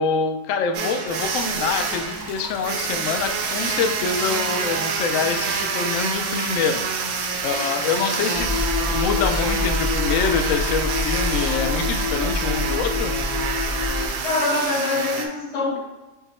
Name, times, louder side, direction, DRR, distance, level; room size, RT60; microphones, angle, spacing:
voice 1, 0.0-6.8 7.4-8.5 8.9-13.1, left 5 dB, 70° left, 5 dB, 0.9 m, -25 dB
sound 1, 0.7-15.3, right 5 dB, 75° right, 1.0 m, -27 dB
sound 2, 1.0-11.8, right 2 dB, 40° right, 0.6 m, -39 dB
sound 3, 8.3-14.1, left 3 dB, 50° left, 0.4 m, -26 dB
voice 2, 8.8-9.3 14.2-15.8, left 3 dB, 30° left, -2 dB, 0.8 m, -25 dB
5.8 x 2.2 x 4.2 m, 1.1 s
omnidirectional pair, 1.6 m